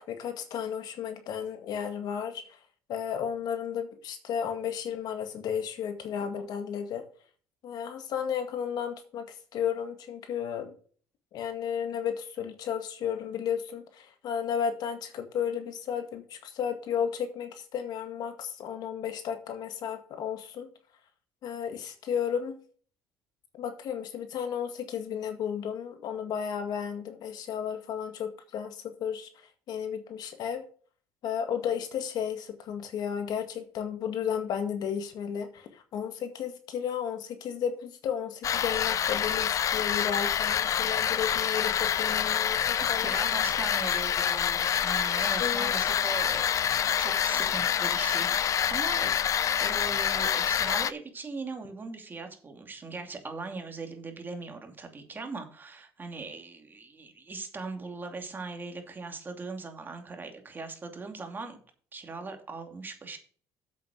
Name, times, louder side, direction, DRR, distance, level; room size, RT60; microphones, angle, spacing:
voice 1, 0.0-2.6 2.9-7.1 7.6-10.7 11.3-20.7 21.4-22.6 23.6-29.3 29.7-30.6 31.2-43.2 45.4-45.7, left 8 dB, 60° left, 7 dB, 1.9 m, -33 dB
sound 1, 38.4-50.9, left 9 dB, 45° left, 0.6 m, -27 dB
voice 2, 42.8-49.2 49.6-61.6 61.9-63.2, right 4 dB, 25° right, 5 dB, 2.6 m, -40 dB
8.0 x 7.6 x 5.0 m, 0.44 s
cardioid pair, 105°, 8 cm